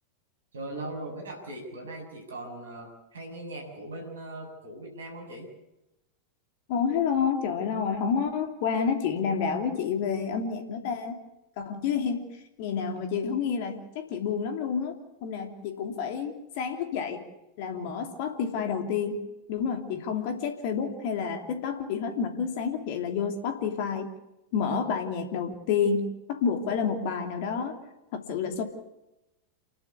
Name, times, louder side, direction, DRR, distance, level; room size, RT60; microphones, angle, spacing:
voice 1, 0.5-5.5, right 2 dB, 65° right, 1 dB, 6.9 m, -39 dB
voice 2, 6.7-11.2 11.6-12.3 12.6-14.9 15.2-17.2 17.6-19.2 19.5-24.1 24.5-27.8 28.1-28.6, left 6 dB, 50° left, 5 dB, 2.9 m, -29 dB
28.5 x 12.0 x 8.5 m, 0.93 s
figure-of-eight pair, 90°, 0 cm